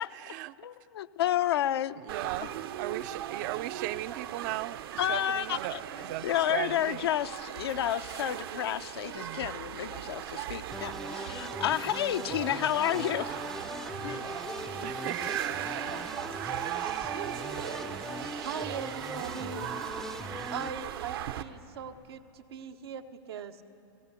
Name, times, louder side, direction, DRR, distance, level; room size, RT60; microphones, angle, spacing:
voice 1, 0.6-2.0 2.4-2.5 5.0-13.4 14.0-14.3, left 12 dB, 90° left, 11 dB, 0.7 m, -31 dB
voice 2, 2.1-2.5 2.8-4.8 5.1-5.7 6.0-7.0 9.1-9.5 14.8-16.2, right 16 dB, 50° right, 17 dB, 0.5 m, -37 dB
sound 1, 2.1-21.4, right 11 dB, 70° right, 1.0 m, -38 dB
sound 2, 10.7-20.7, left 1 dB, ahead, 0.5 m, -41 dB
voice 3, 18.4-19.6 20.5-23.6, right 7 dB, 90° right, 6 dB, 1.2 m, -40 dB
18.5 x 17.0 x 8.3 m, 2.5 s
supercardioid pair, 145°, 13 cm